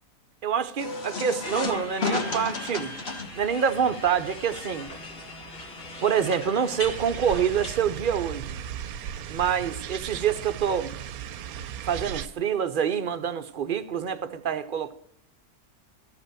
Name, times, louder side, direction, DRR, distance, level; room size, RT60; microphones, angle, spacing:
voice 1, 0.4-3.0 3.4-4.9 6.0-8.6 9.3-10.9 11.8-14.9, right 8 dB, 45° right, 0.7 m, -26 dB
sound 1, 0.8-7.3, left 4 dB, 45° left, 1.6 m, -35 dB
sound 2, 1.4-7.8, left 1 dB, 70° left, 2.7 m, -39 dB
sound 3, 6.8-12.3, right 9 dB, 80° right, 1.1 m, -36 dB
13.5 x 5.6 x 8.9 m
omnidirectional pair, 1.6 m